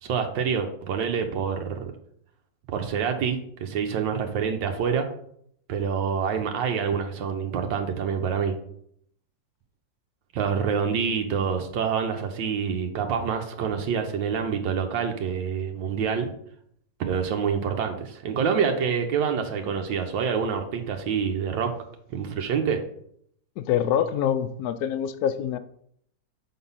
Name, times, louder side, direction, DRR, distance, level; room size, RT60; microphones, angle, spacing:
voice 1, 0.0-1.9 2.7-5.1 5.7-8.5 10.3-16.3 17.0-21.7 22.1-22.8, right 6 dB, 85° right, 4 dB, 1.5 m, -27 dB
voice 2, 23.6-25.6, left 9 dB, 70° left, 12 dB, 0.9 m, -25 dB
6.5 x 4.0 x 5.5 m, 0.68 s
omnidirectional pair, 2.0 m